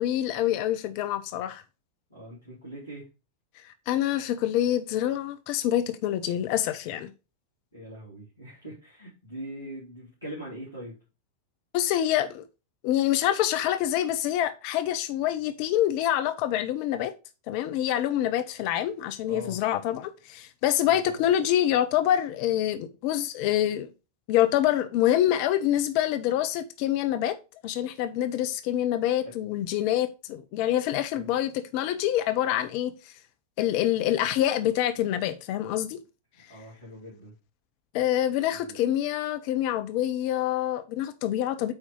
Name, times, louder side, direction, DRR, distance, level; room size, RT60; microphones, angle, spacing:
voice 1, 0.0-1.6 3.6-7.1 11.7-12.4 12.8-17.1 17.5-23.9 24.3-27.4 27.6-33.1 33.6-36.0 37.9-41.7, left 12 dB, 45° left, 0.8 m, -26 dB
voice 2, 2.1-3.1 7.7-10.9 19.2-19.6 20.9-21.2 23.3-23.4 31.1-31.3 36.3-37.3 38.5-38.8, right 1 dB, 85° left, 3.2 m, -42 dB
8.8 x 4.3 x 3.7 m
figure-of-eight pair, 90°, 0 cm